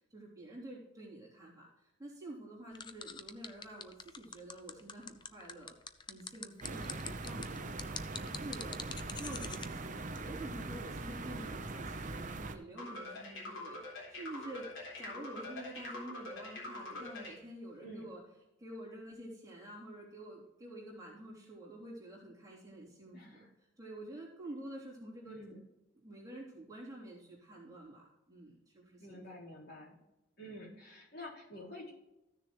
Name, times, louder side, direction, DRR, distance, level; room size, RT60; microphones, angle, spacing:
voice 1, 0.1-1.7 2.0-5.7 6.1-14.7 15.0-18.2 18.6-23.5 23.8-25.6 26.0-29.2, right 1 dB, 20° right, -6 dB, 3.2 m, -48 dB
sound 1, 2.7-9.7, left 6 dB, 25° left, 0.4 m, -44 dB
voice 2, 6.6-7.0 17.8-18.1 23.1-23.5 25.2-25.6 29.0-30.0 30.4-31.9, equal, 55° left, -5 dB, 3.8 m, -49 dB
sound 2, 6.6-12.6, right 2 dB, 40° right, 0.8 m, -41 dB
sound 3, 12.8-17.4, left 2 dB, 80° left, 3.8 m, -44 dB
14.5 x 6.7 x 3.1 m, 0.97 s
head